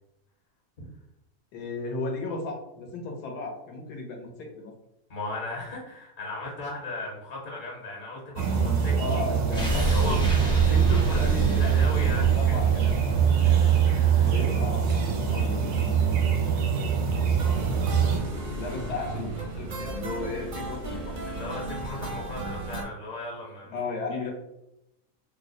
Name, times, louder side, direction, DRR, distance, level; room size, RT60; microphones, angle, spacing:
voice 1, 1.5-4.7 9.0-9.9 10.7-13.3 14.2-17.6 18.6-21.1 23.7-24.3, left 3 dB, 85° left, 1 dB, 1.3 m, -35 dB
voice 2, 5.1-8.9 9.7-12.7 13.3-14.3 21.2-23.7, left 2 dB, 55° left, -3 dB, 1.3 m, -37 dB
sound 1, 8.4-18.2, right 8 dB, 85° right, 1.2 m, -23 dB
sound 2, 9.5-14.5 14.8-14.9, equal, 5° left, 0.4 m, -30 dB
sound 3, 17.4-22.8, right 2 dB, 55° right, 0.5 m, -35 dB
3.2 x 2.0 x 3.7 m, 0.86 s
omnidirectional pair, 1.7 m